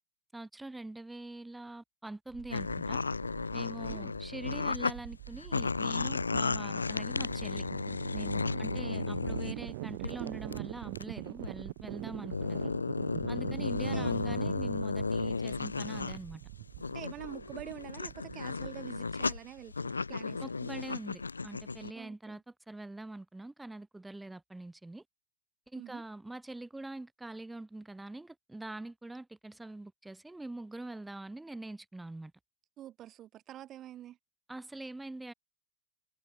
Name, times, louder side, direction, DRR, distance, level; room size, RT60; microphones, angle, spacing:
voice 1, 0.3-3.0 3.5-7.7 8.1-12.7 13.3-16.4 20.4-25.0 25.7-32.3 34.5-35.3, right 2 dB, 5° right, 2.0 m, -44 dB
sound 1, 2.3-19.3, right 19 dB, 50° right, 0.5 m, -44 dB
sound 2, 2.5-4.9 5.3-9.6 10.0-10.3 10.5-10.6 11.0-11.1 11.4-11.5 12.1-16.2 16.6-21.9, left 4 dB, 80° left, 0.4 m, -34 dB
voice 2, 3.8-4.1 8.5-9.0 12.0-12.3 13.9-14.2 16.9-20.4 22.0-22.4 25.8-26.0 32.8-34.2, right 12 dB, 30° right, 1.9 m, -47 dB
figure-of-eight pair, 90°, 0 cm